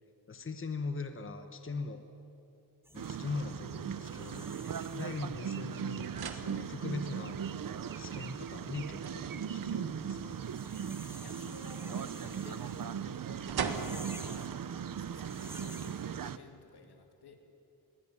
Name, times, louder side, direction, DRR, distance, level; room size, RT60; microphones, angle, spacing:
voice 1, 0.3-2.0 2.9-4.5 4.9-7.4 7.9-10.4, left 4 dB, 35° left, 7 dB, 1.1 m, -40 dB
sound 1, 2.8-16.2, right 1 dB, 5° right, 1.4 m, -53 dB
sound 2, 2.9-16.4, right 8 dB, 60° right, 0.7 m, -39 dB
sound 3, 5.5-16.3, right 5 dB, 75° right, 1.6 m, -46 dB
voice 2, 11.2-17.4, left 4 dB, 80° left, 4 dB, 2.5 m, -54 dB
21.5 x 17.0 x 9.8 m, 2.7 s
wide cardioid pair, 145°, 38 cm